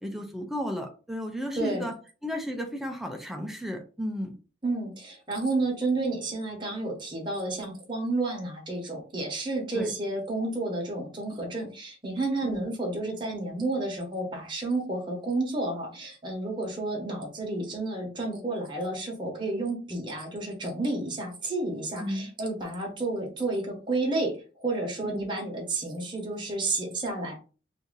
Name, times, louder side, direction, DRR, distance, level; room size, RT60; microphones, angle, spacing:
voice 1, 0.0-2.0 2.2-4.3 9.7-9.9 12.4-12.7 22.0-22.3 25.0-25.3, equal, ahead, 3 dB, 0.4 m, -34 dB
voice 2, 1.6-1.9 4.6-27.4, right 2 dB, 25° right, -1 dB, 1.0 m, -31 dB
2.7 x 2.6 x 3.8 m, 0.35 s
head